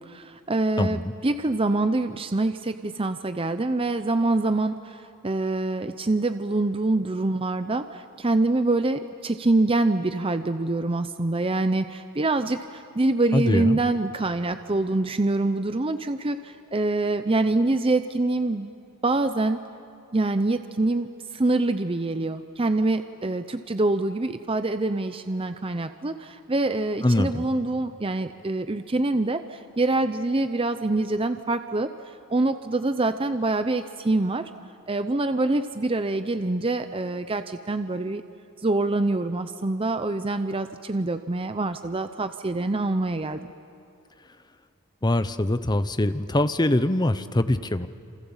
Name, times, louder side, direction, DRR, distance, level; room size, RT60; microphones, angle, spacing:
voice 1, 0.0-18.7 19.0-19.6 20.1-21.1 21.3-31.9 32.3-34.5 34.9-38.2 38.6-43.4, right 2 dB, 25° right, 9 dB, 0.6 m, -25 dB
voice 2, 13.3-13.8 27.0-27.4 45.0-47.9, left 1 dB, 20° left, 12 dB, 0.8 m, -23 dB
28.5 x 27.5 x 7.3 m, 2.6 s
head